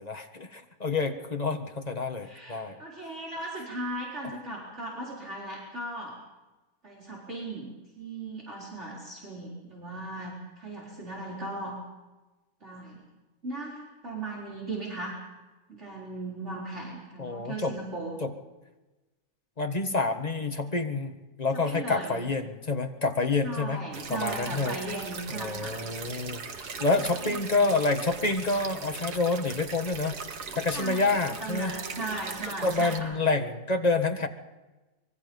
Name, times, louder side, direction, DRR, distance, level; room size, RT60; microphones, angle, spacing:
voice 1, 0.0-2.8 17.2-17.7 18.2-18.3 19.6-23.8 24.1-24.8 25.3-30.2 30.5-31.7 32.6-34.3, left 3 dB, 25° left, 6 dB, 1.5 m, -28 dB
voice 2, 2.2-6.2 6.8-11.8 12.6-13.0 13.4-15.2 15.7-18.2 21.5-22.2 23.4-25.8 26.9-27.6 30.7-33.1, right 2 dB, 45° right, -4 dB, 4.5 m, -37 dB
sound 1, 23.9-33.0, right 5 dB, 85° right, 2.1 m, -39 dB
25.0 x 22.5 x 5.3 m, 1.1 s
omnidirectional pair, 1.7 m